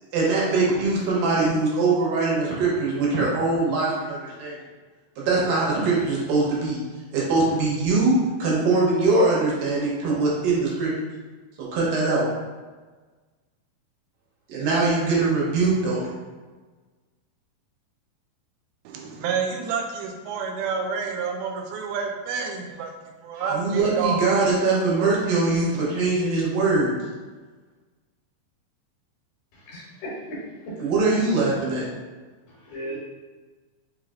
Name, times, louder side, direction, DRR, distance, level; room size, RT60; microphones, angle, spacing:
voice 1, 0.1-4.6 5.3-6.8 7.1-10.9 11.7-12.2 14.5-16.1 23.4-26.9 30.8-31.9, right 3 dB, 75° right, -5 dB, 2.4 m, -22 dB
voice 2, 18.9-22.9 23.2-24.2 24.7-25.1, right 6 dB, 90° right, 2 dB, 2.4 m, -29 dB
voice 3, 29.5-30.9 32.5-33.0, right 1 dB, 70° left, -5 dB, 2.2 m, -36 dB
5.5 x 3.1 x 2.4 m, 1.3 s
omnidirectional pair, 4.2 m